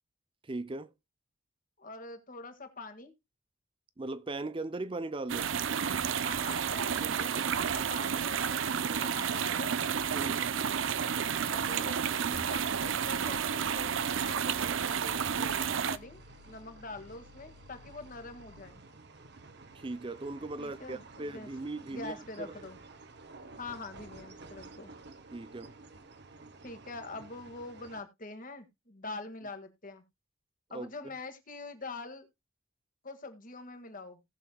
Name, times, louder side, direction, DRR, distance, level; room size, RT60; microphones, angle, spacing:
voice 1, 0.4-0.9 4.0-5.5 10.1-10.5 19.7-22.5 25.3-25.7 30.7-30.9, right 2 dB, 25° right, 0.5 m, -38 dB
voice 2, 1.8-3.1 6.2-9.7 11.4-18.8 20.6-21.5 21.9-22.8 23.6-24.9 26.6-30.0 30.7-32.3 33.0-34.2, left 3 dB, 40° left, 1.8 m, -45 dB
sound 1, 5.3-16.0, right 7 dB, 75° right, 0.6 m, -31 dB
sound 2, 12.3-18.7, left 3 dB, 85° left, 1.4 m, -55 dB
sound 3, 12.8-28.0, right 3 dB, 55° right, 1.0 m, -52 dB
18.5 x 6.6 x 2.2 m
head